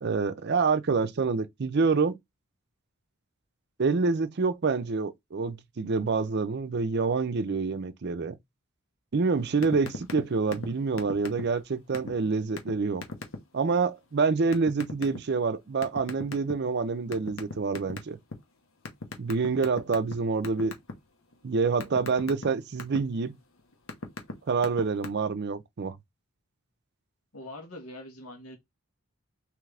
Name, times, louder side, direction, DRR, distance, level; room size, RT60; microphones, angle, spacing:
voice 1, 0.0-2.2 3.8-8.3 9.1-13.0 13.5-18.2 19.2-20.7 21.4-23.3 24.5-25.9, right 4 dB, 50° right, 0.5 m, -27 dB
sound 1, 9.6-10.2 10.5-10.7 11.0-11.6 11.9-12.1 12.6-12.7 13.0-13.4 14.5-15.2 15.8-16.7 17.1-18.3 18.9-20.1 20.4-20.9 21.3-23.0 23.6-24.3 24.6-25.1, left 3 dB, 65° left, 0.9 m, -36 dB
voice 2, 27.3-28.6, left 1 dB, 90° left, 1.4 m, -43 dB
3.7 x 3.1 x 3.3 m
head